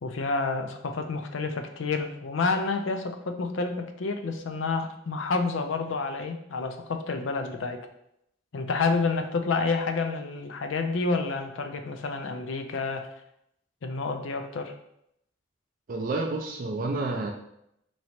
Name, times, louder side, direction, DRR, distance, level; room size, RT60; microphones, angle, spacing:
voice 1, 0.0-7.8 8.5-13.1 13.8-14.7, left 4 dB, 70° left, 6 dB, 0.5 m, -29 dB
voice 2, 15.9-17.3, right 2 dB, 45° right, 2 dB, 0.4 m, -29 dB
3.1 x 2.8 x 4.2 m, 0.78 s
head